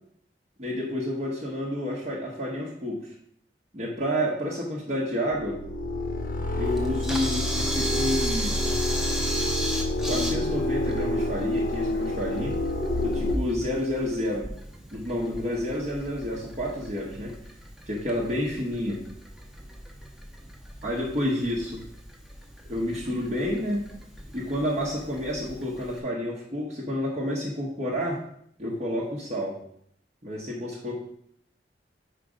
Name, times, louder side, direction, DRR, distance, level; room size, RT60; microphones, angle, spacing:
voice 1, 0.6-3.1 3.7-5.6 6.6-8.6 10.0-12.5 13.0-14.5 14.9-17.4 17.9-19.0 20.8-21.8 22.7-23.8 24.3-28.2 28.6-29.6 30.2-31.0, equal, 40° right, -5 dB, 1.1 m, -29 dB
sound 1, 5.3-13.4, left 1 dB, 50° left, 0.8 m, -28 dB
Camera, 6.7-26.0, right 1 dB, ahead, 0.8 m, -37 dB
5.0 x 4.9 x 5.1 m, 0.68 s
head